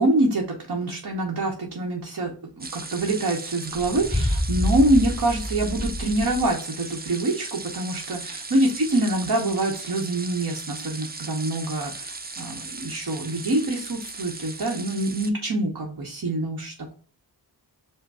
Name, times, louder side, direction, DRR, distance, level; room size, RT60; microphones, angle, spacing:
voice 1, 0.0-16.9, right 1 dB, 55° right, 0 dB, 1.0 m, -25 dB
sound 1, 2.6-15.3, right 3 dB, 25° right, 0.5 m, -37 dB
sound 2, 3.7-6.5, equal, 5° right, 2.3 m, -27 dB
4.9 x 2.2 x 4.7 m, 0.43 s
wide cardioid pair, 90°, 41 cm